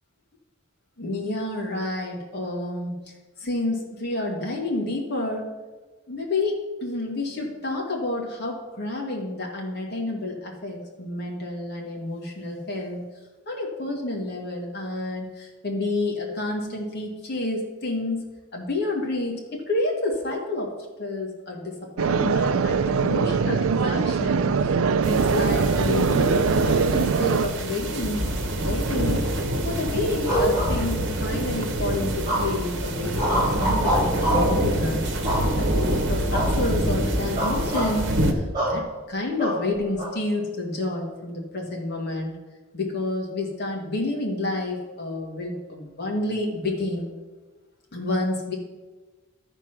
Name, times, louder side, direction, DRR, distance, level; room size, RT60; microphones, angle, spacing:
voice 1, 1.0-3.0 3.4-5.5 6.1-13.1 13.5-18.2 18.5-20.7 21.0-29.2 29.6-42.3 42.7-47.1 47.9-48.5, left 2 dB, 50° left, 0 dB, 2.0 m, -29 dB
sound 1, 22.0-27.5, right 5 dB, 85° right, 0.4 m, -22 dB
sound 2, 25.0-38.3, right 1 dB, 60° right, 1.2 m, -26 dB
sound 3, 30.2-31.3 32.3-32.7 33.2-34.6 35.2-35.8 36.3-36.6 36.9-37.0 37.4-37.9 38.5-38.8 39.4-40.1, equal, 20° right, 3.8 m, -25 dB
13.0 x 4.5 x 6.0 m, 1.3 s
head